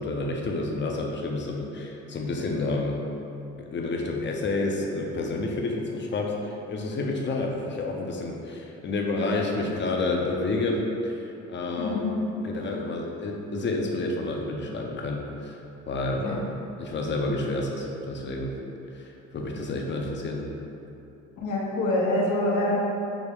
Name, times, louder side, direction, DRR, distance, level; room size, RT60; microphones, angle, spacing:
voice 1, 0.0-3.1 3.6-12.0 12.4-15.6 15.9-16.4 16.8-18.6 18.9-20.5, left 2 dB, 40° left, 0 dB, 0.6 m, -29 dB
voice 2, 11.8-12.3 16.2-16.4 21.4-22.8, left 1 dB, 75° left, -4 dB, 0.8 m, -25 dB
6.2 x 2.1 x 3.5 m, 2.8 s
cardioid pair, 90°, 30 cm